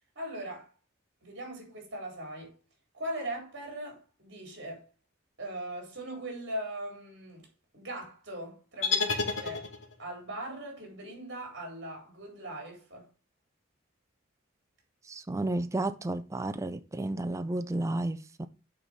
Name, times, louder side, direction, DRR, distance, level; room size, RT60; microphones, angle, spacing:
voice 1, 0.2-0.7 1.2-2.5 2.9-4.9 5.4-7.5 7.7-9.7 10.0-13.1, right 1 dB, 55° right, 4.0 m, -40 dB
sound 1, 8.8-10.1, left 5 dB, 70° left, 1.4 m, -30 dB
voice 2, 15.1-18.5, right 2 dB, 15° right, 0.4 m, -32 dB
8.8 x 4.2 x 5.1 m
head